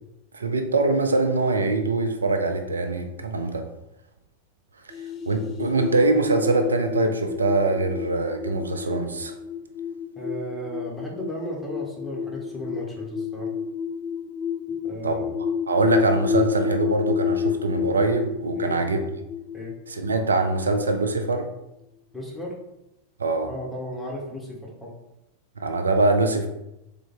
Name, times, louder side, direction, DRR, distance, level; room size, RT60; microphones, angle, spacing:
voice 1, 0.3-3.7 5.3-9.3 15.0-19.0 19.9-21.5 23.2-23.5 25.6-26.5, right 2 dB, 75° right, 6 dB, 0.4 m, -23 dB
sound 1, 4.9-21.2, left 7 dB, 30° left, 0.3 m, -30 dB
voice 2, 10.1-13.5 14.8-15.2 18.5-18.9 19.5-19.7 22.1-22.5 23.4-24.9, equal, 5° left, -3 dB, 1.2 m, -35 dB
3.7 x 3.5 x 3.7 m, 0.89 s
figure-of-eight pair, 90°, 0 cm